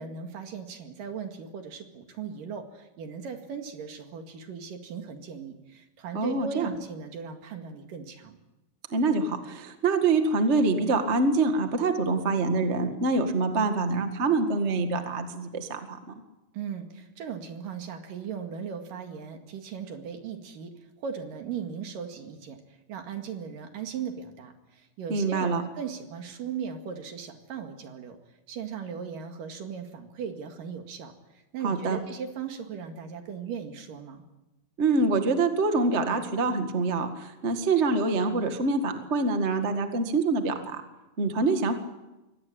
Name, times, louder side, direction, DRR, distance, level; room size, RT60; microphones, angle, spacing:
voice 1, 0.0-8.4 16.5-20.7 21.0-22.6 22.9-28.2 28.5-34.2, right 6 dB, 65° right, 5 dB, 3.5 m, -38 dB
voice 2, 6.1-6.7 8.9-16.1 25.1-25.6 31.6-32.0 34.8-40.8 41.2-41.7, right 3 dB, 35° right, 6 dB, 1.0 m, -25 dB
24.0 x 18.5 x 8.9 m, 1.0 s
omnidirectional pair, 4.4 m